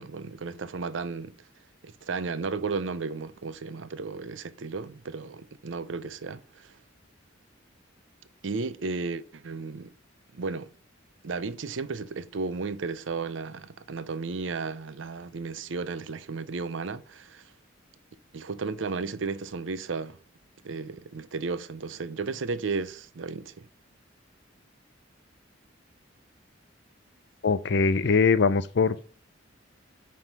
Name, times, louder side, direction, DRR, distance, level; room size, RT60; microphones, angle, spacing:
voice 1, 0.0-1.3 1.8-6.7 8.4-9.9 10.3-10.7 11.2-17.4 18.3-20.2 20.6-23.7, right 4 dB, 70° right, 0.6 m, -34 dB
voice 2, 27.4-29.0, left 4 dB, 60° left, 0.5 m, -22 dB
9.5 x 3.6 x 6.0 m
head